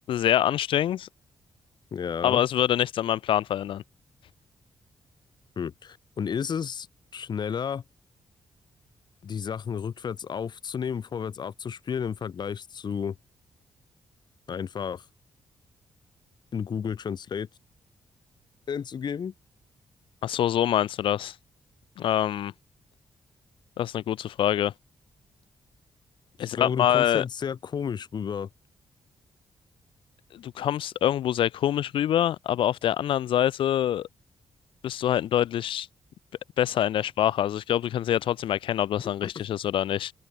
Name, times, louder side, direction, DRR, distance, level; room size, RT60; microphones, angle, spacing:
voice 1, 0.1-1.1 2.2-3.8 20.2-21.4 22.0-22.5 23.8-24.7 26.4-27.2 30.3-34.1 34.8-35.9 36.6-40.1, left 11 dB, 75° left, 0.4 m, -25 dB
voice 2, 1.9-2.4 5.6-6.9 7.1-7.8 9.2-13.2 14.5-15.0 16.5-17.5 18.7-19.3 26.4-28.5 39.2-39.4, left 7 dB, 55° left, 1.9 m, -32 dB
cardioid pair, 100°, 9 cm